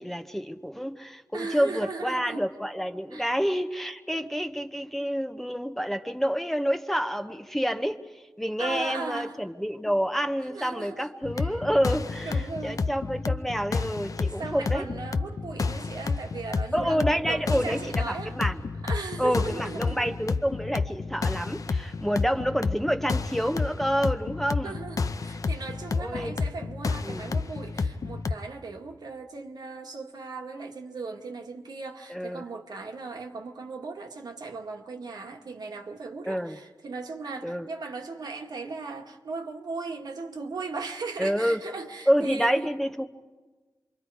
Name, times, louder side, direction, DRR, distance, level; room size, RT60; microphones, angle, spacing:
voice 1, 0.0-8.0 8.4-14.9 16.7-18.6 19.2-24.8 26.0-26.4 27.0-27.3 32.1-32.4 36.2-36.6 37.4-37.7 41.2-41.6 42.1-43.0, equal, 5° left, 0.9 m, -28 dB
voice 2, 1.3-2.4 3.1-3.3 4.1-4.3 8.6-9.4 10.4-11.1 11.4-11.6 12.2-12.9 14.4-18.4 18.8-20.0 24.6-42.7 43.0-43.1, right 4 dB, 70° right, 1.6 m, -37 dB
sound 1, 11.2-28.3, left 4 dB, 55° left, 0.7 m, -30 dB
27.0 x 23.5 x 4.8 m
cardioid pair, 65°, 7 cm